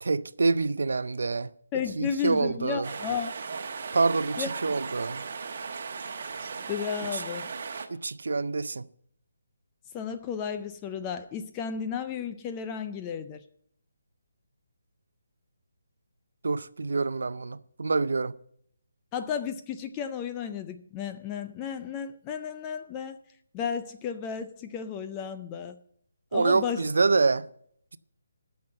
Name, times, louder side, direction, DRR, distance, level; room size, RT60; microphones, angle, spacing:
voice 1, 0.0-1.5 2.0-2.9 3.9-5.2 7.1-7.2 7.9-8.9 16.4-18.4 26.3-27.5, right 3 dB, 70° right, 0.5 m, -26 dB
voice 2, 1.7-3.3 4.4-4.5 6.7-7.5 9.9-13.4 19.1-23.2 23.5-25.8 26.3-26.8, left 7 dB, 15° left, 0.3 m, -33 dB
sound 1, 2.8-7.9, right 5 dB, 40° right, 1.0 m, -37 dB
11.0 x 6.1 x 7.7 m
hypercardioid pair, 175°, 0 cm